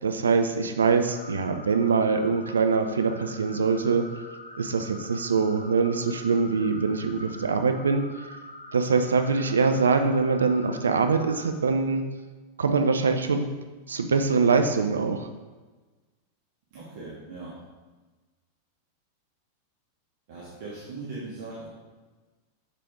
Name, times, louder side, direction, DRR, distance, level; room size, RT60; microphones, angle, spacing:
voice 1, 0.0-4.1 4.6-8.0 8.7-12.0 12.6-13.5 13.9-15.3, right 4 dB, 70° right, 7 dB, 0.4 m, -23 dB
sound 1, 1.0-11.5, left 1 dB, 80° left, 0.7 m, -44 dB
voice 2, 16.7-17.6 20.3-21.7, right 3 dB, 50° right, -7 dB, 1.4 m, -39 dB
6.6 x 5.0 x 3.6 m, 1.3 s
figure-of-eight pair, 90°, 0 cm